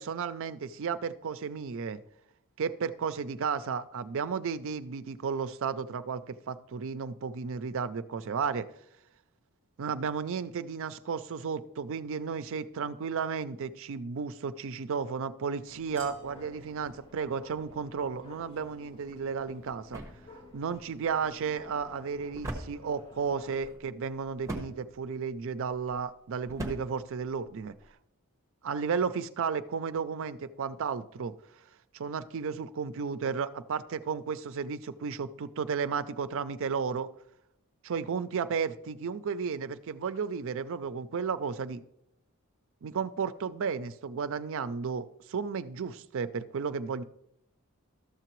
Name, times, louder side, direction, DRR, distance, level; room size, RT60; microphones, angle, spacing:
voice 1, 0.0-2.0 2.6-8.7 9.8-20.0 20.5-27.7 28.6-31.3 31.9-37.1 37.8-41.8 42.8-47.0, right 6 dB, 65° right, 12 dB, 0.4 m, -33 dB
sound 1, 15.7-23.8, left 1 dB, 25° left, 1.6 m, -53 dB
sound 2, 19.0-27.9, right 1 dB, 15° right, 1.0 m, -44 dB
12.5 x 6.7 x 3.1 m, 0.77 s
head